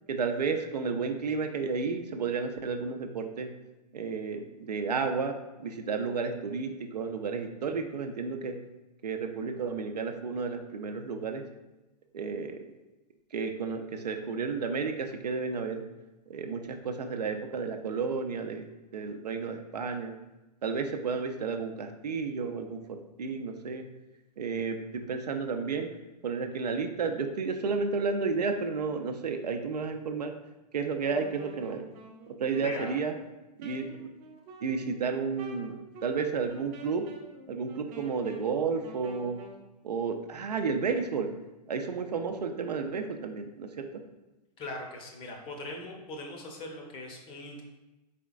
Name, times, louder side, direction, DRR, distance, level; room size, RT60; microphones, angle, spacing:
voice 1, 0.1-3.5 3.9-8.6 9.0-11.4 12.1-12.7 13.3-15.8 16.3-18.7 18.9-20.1 20.6-23.8 24.4-25.9 26.2-30.3 30.7-31.8 32.3-33.1 33.6-34.1 34.6-37.1 37.5-39.4 39.8-41.3 41.7-43.9, right 5 dB, 70° right, 6 dB, 0.5 m, -32 dB
Wind instrument woodwind instrument, 30.9-39.7, right 1 dB, 30° right, 0.6 m, -48 dB
voice 2, 32.6-32.9 44.6-47.6, left 2 dB, 25° left, 2 dB, 0.6 m, -40 dB
4.2 x 3.7 x 2.3 m, 1.0 s
figure-of-eight pair, 105°, 21 cm